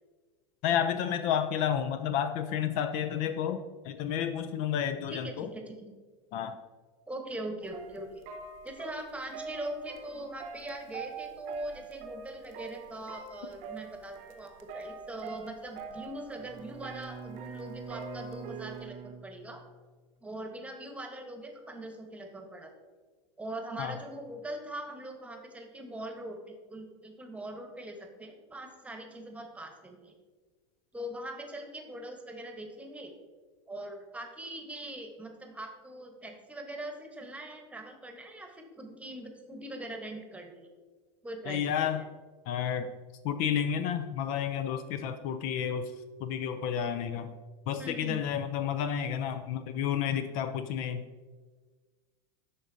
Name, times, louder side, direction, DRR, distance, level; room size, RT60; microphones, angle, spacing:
voice 1, 0.6-5.5 6.3-6.6 23.8-24.0 41.5-42.0 42.5-42.9 43.2-45.9 46.2-47.3 47.7-51.0, left 9 dB, 60° left, 10 dB, 0.5 m, -31 dB
voice 2, 5.1-5.9 7.1-8.3 8.6-19.6 20.2-22.7 23.4-30.1 30.9-33.1 33.7-40.7 41.2-41.9 47.8-48.2, right 1 dB, 10° right, 3 dB, 1.1 m, -41 dB
sound 1, 7.6-18.9, right 4 dB, 55° right, 0.8 m, -45 dB
Bowed string instrument, 16.4-20.0, right 5 dB, 25° right, 0.5 m, -45 dB
11.0 x 3.9 x 2.7 m, 1.4 s
hypercardioid pair, 95°, 15 cm